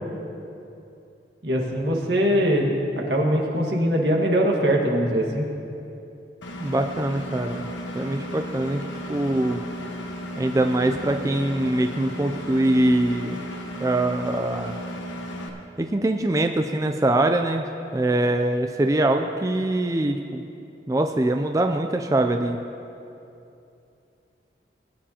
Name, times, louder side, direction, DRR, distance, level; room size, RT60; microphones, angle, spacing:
voice 1, 1.4-2.7 3.1-5.4, equal, 65° right, 0 dB, 1.6 m, -22 dB
Engine, 6.4-15.5, equal, 90° left, 1.4 m, -35 dB
voice 2, 6.6-7.7 7.9-9.6 10.4-13.4 13.8-14.8 15.8-17.7 17.9-20.4 20.9-22.6, right 1 dB, 20° right, 5 dB, 0.3 m, -23 dB
20.0 x 9.9 x 2.9 m, 2.7 s
head